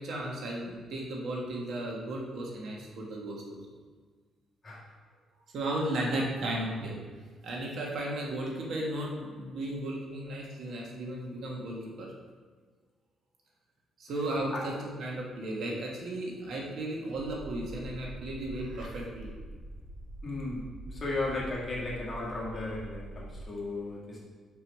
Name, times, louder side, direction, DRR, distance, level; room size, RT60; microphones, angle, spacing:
voice 1, 0.0-3.4 5.5-7.0 7.4-12.1 14.0-19.3, right 1 dB, 65° right, -2 dB, 1.4 m, -35 dB
sound 1, 17.1-23.5, right 1 dB, 20° right, 1.6 m, -44 dB
voice 2, 20.2-24.2, left 2 dB, 35° left, -5 dB, 1.7 m, -35 dB
5.4 x 4.7 x 4.1 m, 1.5 s
cardioid pair, 90°, 0 cm